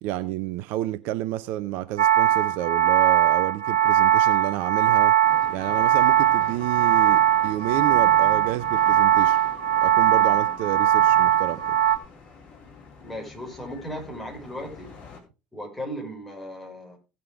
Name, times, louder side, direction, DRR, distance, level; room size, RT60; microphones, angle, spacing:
voice 1, 0.0-5.2 5.5-9.4 9.8-11.6, right 15 dB, 55° right, 0.5 m, -30 dB
sound 1, 2.0-12.0, right 11 dB, 75° right, 0.9 m, -20 dB
sound 2, 5.2-15.2, left 3 dB, 40° left, 3.7 m, -45 dB
voice 2, 13.0-14.9 15.5-17.0, equal, 5° left, 5.7 m, -36 dB
17.5 x 6.8 x 3.5 m
figure-of-eight pair, 60°, 3 cm